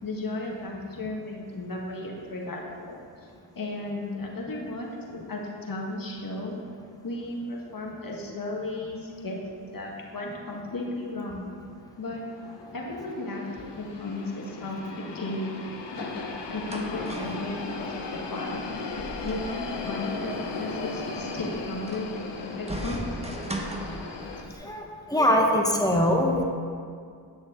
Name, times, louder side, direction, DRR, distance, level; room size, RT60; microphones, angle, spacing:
voice 1, 0.0-3.0 3.5-6.6 7.0-9.4 9.7-11.5 12.0-12.3 12.7-13.5 13.8-15.6 16.5-18.6 19.2-23.0, left 2 dB, 45° left, -1 dB, 1.7 m, -34 dB
sound 1, 11.8-24.4, left 3 dB, 60° left, 1.1 m, -36 dB
sound 2, 16.1-24.5, right 1 dB, 15° right, 1.1 m, -39 dB
voice 2, 24.6-26.4, left 1 dB, 10° left, 0 dB, 1.2 m, -22 dB
9.3 x 6.3 x 3.8 m, 2.2 s
cardioid pair, 60°, 47 cm